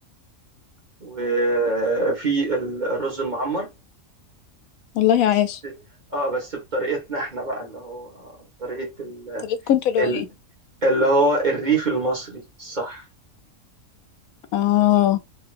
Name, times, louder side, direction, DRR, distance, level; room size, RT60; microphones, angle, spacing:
voice 1, 1.0-3.7 5.6-5.7 6.1-8.3 8.6-9.5 10.0-10.2 10.8-13.0, right 2 dB, 35° right, 1.4 m, -24 dB
voice 2, 5.0-5.6 9.4-10.2 14.5-15.2, left 12 dB, 85° left, 1.0 m, -19 dB
3.4 x 2.8 x 2.4 m
omnidirectional pair, 1.4 m